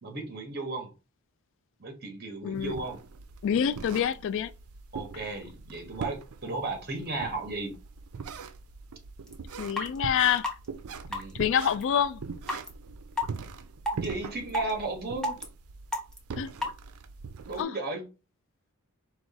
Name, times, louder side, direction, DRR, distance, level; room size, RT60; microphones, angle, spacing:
voice 1, 0.0-0.9 1.8-3.0 4.9-7.8 11.1-11.4 13.3-13.4 13.9-15.4 17.5-18.0, right 2 dB, 45° right, 1.2 m, -35 dB
voice 2, 2.4-2.8 3.4-4.5 9.6-10.5 11.3-12.2 16.4-16.5 17.6-17.8, left 8 dB, 60° left, 0.3 m, -26 dB
sound 1, 2.5-17.6, right 5 dB, 75° right, 0.5 m, -42 dB
sound 2, 9.3-9.4 9.8-9.9 10.4-10.5 11.1-11.3 11.8-11.9 12.5-12.7 13.2-13.3 13.9-14.0 14.5-14.7 15.2-15.4 15.9-16.2 16.6-16.7, left 1 dB, 5° left, 0.8 m, -29 dB
4.7 x 2.4 x 4.0 m
head